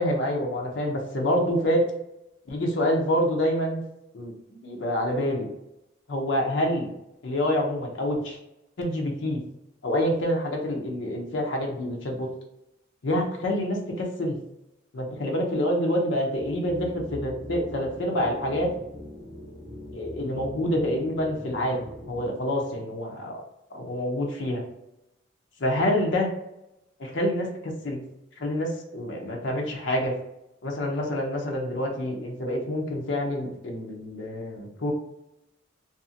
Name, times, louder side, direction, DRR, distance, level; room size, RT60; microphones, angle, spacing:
voice 1, 0.0-1.8 2.5-3.8 4.1-5.5 6.1-6.9 7.2-8.4 8.8-9.4 9.8-12.3 13.0-14.4 14.9-18.7 19.9-23.4 23.7-24.6 25.6-26.3 27.0-28.0 28.4-30.1 30.6-34.9, equal, 60° left, 0 dB, 0.6 m, -27 dB
sound 1, 16.4-22.3, left 1 dB, 20° right, 1.3 m, -41 dB
2.6 x 2.4 x 2.6 m, 0.87 s
head